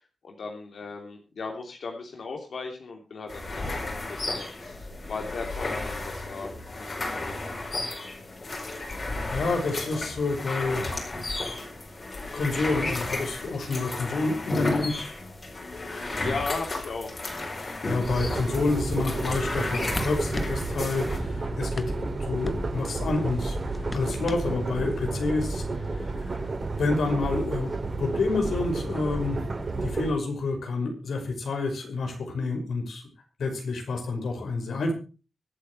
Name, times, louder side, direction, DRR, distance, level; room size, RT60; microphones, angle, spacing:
voice 1, 0.2-7.3 15.6-17.2, left 4 dB, 70° left, 2 dB, 3.0 m, -37 dB
sound 1, 3.3-21.2, left 2 dB, 35° left, 4.7 m, -33 dB
voice 2, 9.3-10.9 12.3-14.9 17.5-26.5 26.8-29.5 29.8-33.1 33.4-34.9, left 3 dB, 85° left, 3 dB, 5.7 m, -29 dB
sound 2, 18.0-30.1, right 3 dB, 40° right, 4.0 m, -31 dB
sound 3, 18.5-24.6, left 2 dB, 20° left, 1.1 m, -36 dB
24.5 x 8.6 x 3.2 m, 0.34 s
wide cardioid pair, 150°, 0 cm